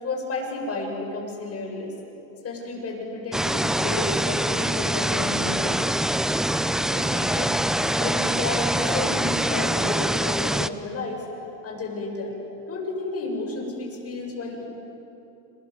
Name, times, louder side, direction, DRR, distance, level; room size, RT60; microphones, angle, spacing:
voice 1, 0.0-1.9 2.4-5.8 6.8-11.3 11.6-12.4 12.7-14.6, left 2 dB, 30° left, 1 dB, 8.0 m, -32 dB
sound 1, 3.3-10.7, right 1 dB, ahead, 0.5 m, -24 dB
30.0 x 24.5 x 8.1 m, 3.0 s
supercardioid pair, 115°, 46 cm